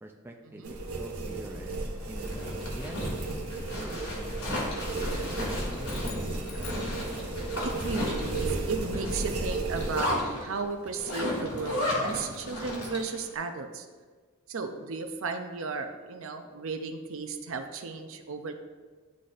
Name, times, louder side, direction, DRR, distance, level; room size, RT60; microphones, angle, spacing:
voice 1, 0.0-3.0 3.6-6.8, right 1 dB, 10° right, 1 dB, 0.4 m, -46 dB
sound 1, 0.6-10.0, right 2 dB, 90° right, 1.1 m, -34 dB
Zipper (clothing), 2.0-13.2, left 1 dB, 80° left, 2.0 m, -35 dB
sound 2, 5.8-7.6, left 9 dB, 45° left, 0.5 m, -48 dB
voice 2, 7.6-13.8 14.5-18.6, right 4 dB, 65° right, 7 dB, 0.6 m, -35 dB
11.5 x 4.0 x 2.5 m, 1.4 s
head